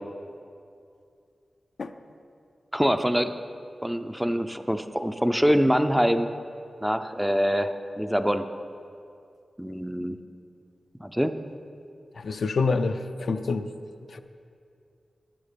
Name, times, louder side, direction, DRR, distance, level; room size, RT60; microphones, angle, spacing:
voice 1, 2.7-3.3 3.8-6.3 6.8-8.4 9.6-10.2 11.0-11.3, equal, 5° right, 8 dB, 0.4 m, -24 dB
voice 2, 12.2-13.7 14.1-14.2, left 4 dB, 70° left, 8 dB, 0.4 m, -27 dB
11.5 x 9.1 x 5.1 m, 2.4 s
wide cardioid pair, 100°, 0 cm